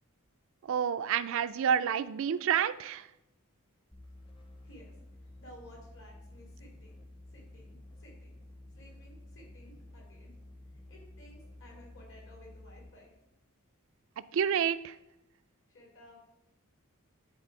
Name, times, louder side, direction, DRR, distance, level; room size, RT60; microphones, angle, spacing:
voice 1, 0.6-3.1 14.3-15.0, right 8 dB, 65° right, 14 dB, 0.3 m, -29 dB
sound 1, 3.9-13.0, left 1 dB, 25° left, 0.8 m, -52 dB
voice 2, 5.2-7.0 7.3-8.3 8.7-10.3 10.9-13.1 15.7-16.2, left 1 dB, 60° left, -1 dB, 2.8 m, -55 dB
10.0 x 4.2 x 4.7 m, 0.89 s
head